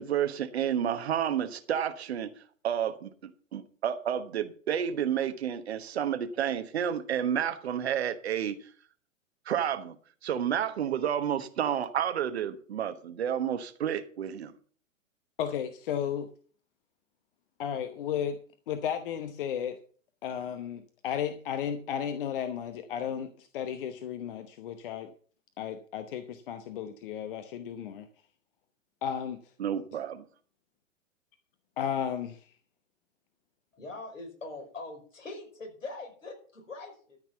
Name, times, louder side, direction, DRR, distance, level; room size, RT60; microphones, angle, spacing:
voice 1, 0.0-2.3 2.6-3.1 3.5-8.6 9.5-9.9 10.2-14.5 29.6-30.2, right 9 dB, 55° right, 1.2 m, -30 dB
voice 2, 15.4-16.3 17.6-18.4 18.7-19.8 20.2-25.1 25.6-28.1 29.0-29.4 31.8-32.5, left 9 dB, 45° left, 1.0 m, -34 dB
voice 3, 33.7-37.2, left 3 dB, 75° left, 5.5 m, -42 dB
13.0 x 6.0 x 7.0 m
figure-of-eight pair, 110°, 39 cm